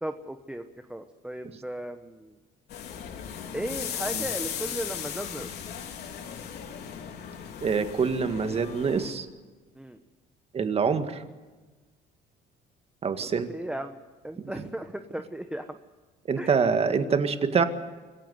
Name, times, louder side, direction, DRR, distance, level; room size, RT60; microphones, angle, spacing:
voice 1, 0.0-2.3 3.5-5.6 9.8-10.0 13.2-14.0 14.2-15.8 16.4-16.5, right 1 dB, 5° right, 7 dB, 1.1 m, -36 dB
sound 1, 2.7-9.1, left 8 dB, 70° left, 3.3 m, -37 dB
voice 2, 7.6-9.3 10.5-11.2 13.0-13.5 16.3-17.6, right 5 dB, 35° right, 8 dB, 1.9 m, -25 dB
26.0 x 15.0 x 8.0 m, 1.3 s
cardioid pair, 110°, 17 cm